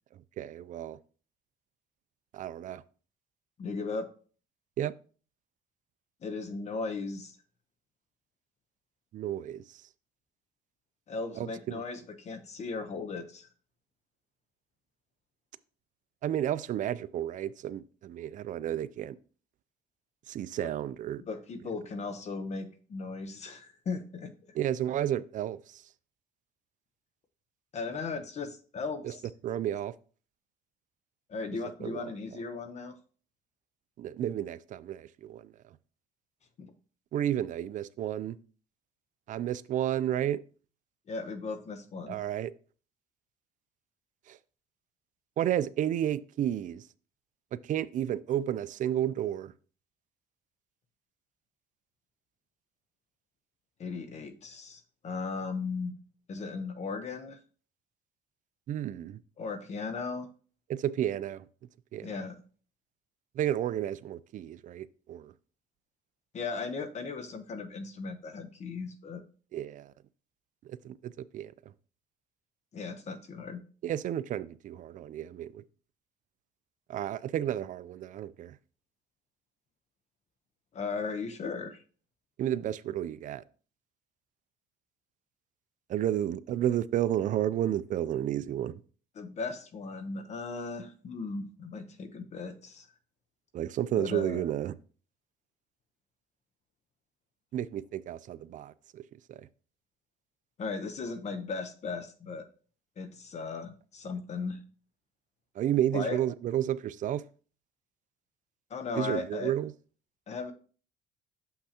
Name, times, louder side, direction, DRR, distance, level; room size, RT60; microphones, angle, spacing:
voice 1, 0.4-1.0 2.3-2.8 4.8-4.9 9.1-9.6 11.4-11.8 16.2-19.2 20.3-21.2 24.6-25.8 29.0-29.1 29.4-29.9 31.8-32.1 34.0-35.5 37.1-38.4 39.3-40.4 42.1-42.5 44.3-44.4 45.4-46.8 47.5-49.5 58.7-59.2 60.7-61.4 61.9-62.1 63.4-65.3 69.5-69.9 70.6-71.5 73.8-75.6 76.9-78.6 82.4-83.4 85.9-88.8 93.5-94.7 97.5-99.0 99.3-99.5 105.6-107.2 109.0-109.7, right 11 dB, 50° right, 0.4 m, -32 dB
voice 2, 3.6-4.1 6.2-7.4 11.1-13.5 20.6-20.7 21.3-24.3 27.7-29.2 31.3-33.0 36.6-36.7 41.1-42.2 53.8-56.0 56.3-57.4 59.4-60.3 62.0-62.4 66.3-69.2 72.7-73.6 80.7-81.8 89.2-92.9 94.0-94.4 100.6-102.5 103.0-104.6 105.9-106.2 108.7-109.5 110.3-110.5, left 4 dB, 40° left, 0.8 m, -37 dB
6.4 x 5.8 x 2.8 m
cardioid pair, 110°, 17 cm